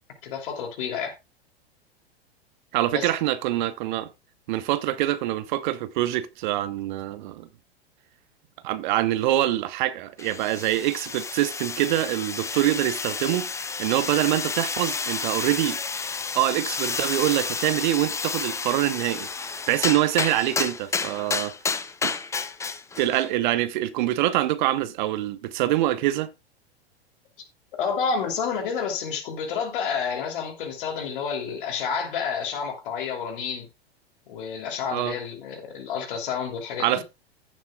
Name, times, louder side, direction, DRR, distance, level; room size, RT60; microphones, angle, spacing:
voice 1, 0.2-1.2 2.9-3.1 27.7-33.7 34.3-37.0, left 6 dB, 55° left, 2.9 m, -29 dB
voice 2, 2.7-4.1 4.5-7.5 8.6-15.8 16.3-19.3 19.7-21.5 22.0-22.1 23.0-26.3 34.9-35.1 36.8-37.0, right 14 dB, 50° right, 0.9 m, -25 dB
sound 1, 10.2-23.3, left 5 dB, 10° left, 0.6 m, -31 dB
15.0 x 7.1 x 2.3 m
figure-of-eight pair, 90°, 31 cm